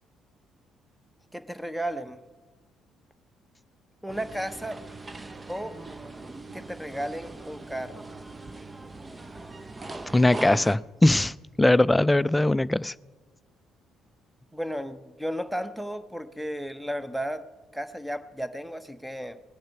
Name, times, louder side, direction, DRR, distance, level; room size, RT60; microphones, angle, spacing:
voice 1, 1.3-2.2 4.0-4.8 5.5-5.8 6.5-8.1 14.5-19.4, equal, 5° right, 12 dB, 1.1 m, -34 dB
sound 1, 4.1-10.8, right 2 dB, 25° right, 0.9 m, -41 dB
voice 2, 10.1-12.9, left 1 dB, 15° left, 19 dB, 0.4 m, -21 dB
19.5 x 10.5 x 5.8 m, 1.3 s
hypercardioid pair, 50°, 0 cm